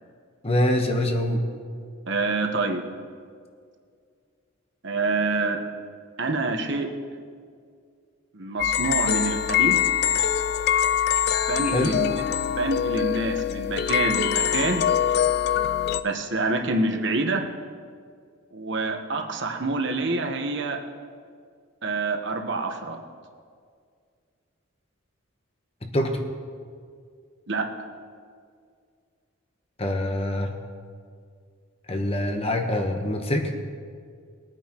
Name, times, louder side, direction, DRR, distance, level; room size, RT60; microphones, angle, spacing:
voice 1, 0.4-1.4 11.6-11.9 25.8-26.2 29.8-30.5 31.9-33.5, left 1 dB, 30° left, 4 dB, 1.0 m, -24 dB
voice 2, 2.1-2.8 4.8-5.6 6.2-6.9 8.3-9.8 11.5-12.1 12.4-14.9 16.0-17.4 18.5-20.8 21.8-23.0 27.5-27.6, right 3 dB, 55° right, 3 dB, 1.1 m, -26 dB
sound 1, 8.6-16.0, left 9 dB, 50° left, 0.3 m, -24 dB
21.5 x 9.0 x 3.0 m, 2.2 s
head